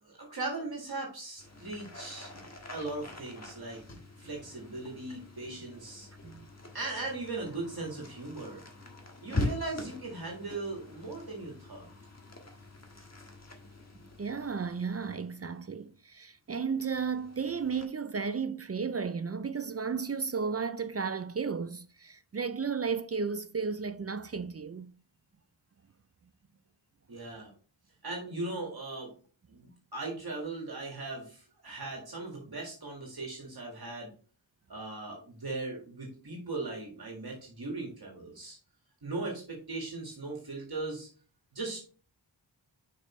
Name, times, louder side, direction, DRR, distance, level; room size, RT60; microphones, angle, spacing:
voice 1, 0.0-2.3 2.7-3.8 4.2-6.1 6.7-8.6 9.2-11.9 27.1-27.5 28.0-29.1 29.5-34.1 34.7-38.6 39.0-41.1 41.5-41.8, right 2 dB, 50° right, 1.8 m, -38 dB
sound 1, 1.4-15.9 16.5-17.9, left 2 dB, 35° left, 1.5 m, -43 dB
voice 2, 14.2-24.9, right 5 dB, 35° right, 0.4 m, -34 dB
6.5 x 5.4 x 3.1 m
wide cardioid pair, 75°, 46 cm